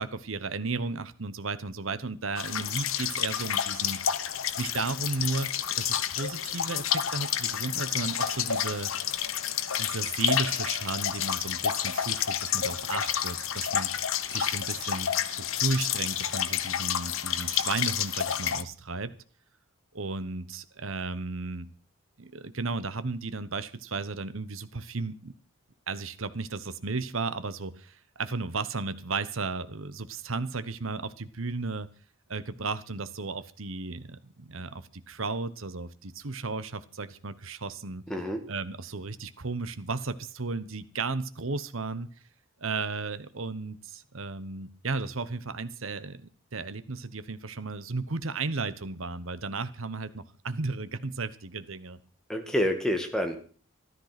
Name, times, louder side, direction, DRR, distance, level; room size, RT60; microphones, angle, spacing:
voice 1, 0.0-4.2 4.6-8.9 9.8-13.9 14.3-19.2 19.9-21.7 22.2-25.3 25.9-31.9 32.3-38.0 38.5-42.1 42.6-52.0, right 3 dB, 70° right, 14 dB, 1.1 m, -34 dB
sound 1, 2.4-18.6, left 9 dB, 70° left, 0.9 m, -30 dB
voice 2, 38.1-38.5 52.3-53.4, equal, 5° left, 4 dB, 2.0 m, -28 dB
13.5 x 12.5 x 6.0 m, 0.43 s
head